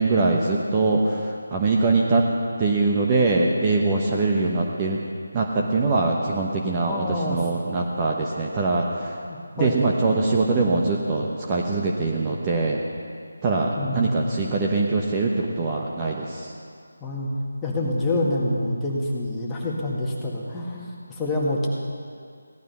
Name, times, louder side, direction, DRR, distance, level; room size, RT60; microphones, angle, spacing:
voice 1, 0.0-2.3 2.6-5.0 5.3-9.1 9.6-12.8 13.4-16.5, right 3 dB, 20° right, -2 dB, 1.0 m, -23 dB
voice 2, 6.8-7.4 9.3-9.9 13.8-14.2 17.0-17.3 17.6-21.7, left 1 dB, 10° left, -4 dB, 1.8 m, -27 dB
16.5 x 12.0 x 5.7 m, 2.4 s
figure-of-eight pair, 160°, 0 cm